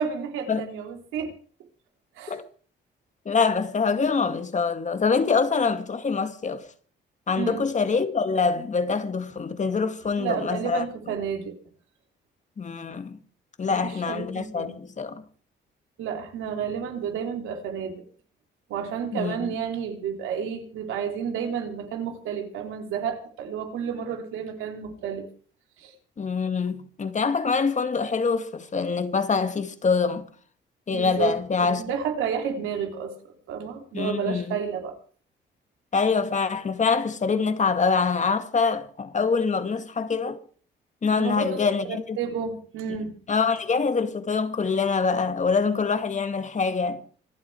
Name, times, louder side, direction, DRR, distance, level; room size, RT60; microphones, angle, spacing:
voice 1, 0.0-1.3 2.2-2.4 7.4-7.6 10.2-11.5 13.7-14.7 16.0-18.0 18.7-25.3 25.8-25.9 30.9-31.4 31.6-33.1 33.5-35.0 41.2-43.1, right 7 dB, 90° right, 3.5 m, -31 dB
voice 2, 3.3-6.6 7.3-10.8 12.6-13.2 13.6-15.2 19.1-19.5 26.2-30.3 30.9-31.8 33.9-34.6 35.9-40.4 41.0-42.2 43.3-47.0, left 5 dB, 40° left, 2.2 m, -25 dB
26.0 x 8.8 x 4.8 m
cardioid pair, 90°, 20 cm